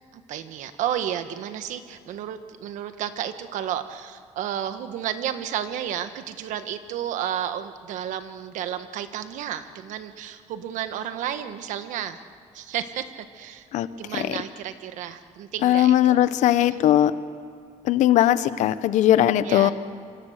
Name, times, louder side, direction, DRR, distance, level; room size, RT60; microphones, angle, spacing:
voice 1, 0.1-12.2 12.5-13.7 14.0-16.2 16.7-16.8 19.4-19.7, right 10 dB, 80° right, 10 dB, 1.4 m, -32 dB
voice 2, 15.6-17.1 17.8-19.7, left 12 dB, 75° left, 14 dB, 0.9 m, -19 dB
28.0 x 24.5 x 6.6 m, 2.4 s
cardioid pair, 155°, 13 cm